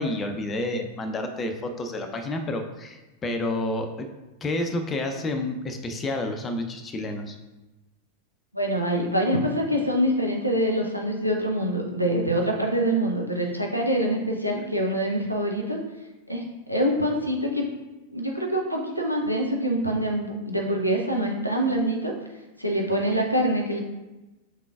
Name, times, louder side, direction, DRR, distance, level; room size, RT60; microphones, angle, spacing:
voice 1, 0.0-4.1 4.4-7.4, left 1 dB, 20° left, 5 dB, 0.5 m, -29 dB
voice 2, 8.5-15.8 16.3-16.4 16.7-17.7 18.1-22.1 22.6-23.8, equal, 90° right, -1 dB, 0.5 m, -25 dB
5.5 x 3.8 x 2.3 m, 1.1 s
figure-of-eight pair, 90°, 0 cm